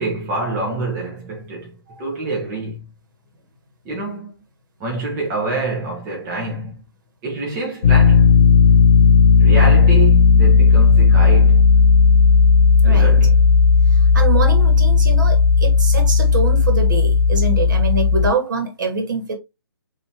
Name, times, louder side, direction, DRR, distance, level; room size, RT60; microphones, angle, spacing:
voice 1, 0.0-2.8 3.8-4.4 4.8-6.8 7.2-8.4 9.4-11.6 12.8-13.4, right 2 dB, 20° right, 1.3 m, -26 dB
sound 1, 7.8-18.3, left 5 dB, 45° left, 0.6 m, -13 dB
voice 2, 14.1-19.3, right 3 dB, 45° right, 1.8 m, -24 dB
5.5 x 3.1 x 3.0 m
figure-of-eight pair, 140°, 14 cm